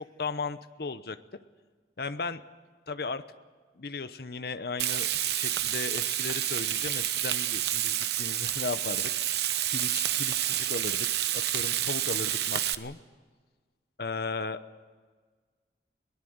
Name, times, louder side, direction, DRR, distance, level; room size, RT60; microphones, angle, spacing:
voice 1, 0.2-1.2 2.0-2.4 2.9-3.2 3.8-9.1 9.7-13.0 14.0-14.6, left 4 dB, 60° left, 11 dB, 0.9 m, -36 dB
Frying (food), 4.8-12.7, right 12 dB, 70° right, 0.9 m, -29 dB
22.5 x 19.0 x 7.9 m, 1.5 s
head